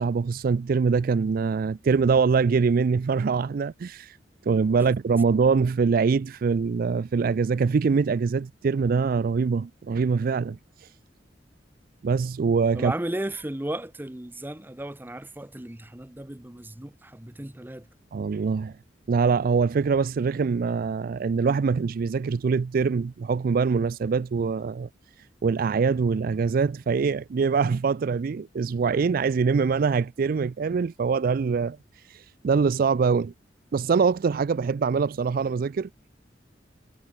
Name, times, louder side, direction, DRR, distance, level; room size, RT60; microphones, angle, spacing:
voice 1, 0.0-4.2 4.5-10.6 12.0-12.9 18.1-18.7 19.1-24.9 25.4-31.8 32.1-33.3 33.7-35.9, right 5 dB, 50° right, 0.4 m, -24 dB
voice 2, 12.7-17.9, right 1 dB, 10° right, 0.8 m, -35 dB
head